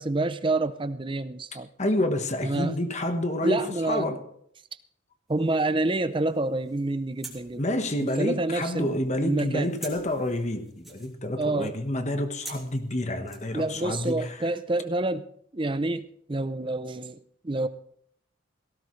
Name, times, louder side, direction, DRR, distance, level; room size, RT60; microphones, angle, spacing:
voice 1, 0.0-1.7 2.4-2.8 3.4-4.1 5.3-7.6 8.2-9.7 11.4-11.8 13.5-15.3 15.5-17.2 17.4-17.7, right 2 dB, 25° right, 0.6 m, -28 dB
voice 2, 1.8-4.2 7.6-14.4, left 1 dB, 35° left, 1.3 m, -28 dB
sound 1, 5.3-14.3, right 2 dB, ahead, 2.9 m, -49 dB
18.0 x 16.5 x 3.3 m
head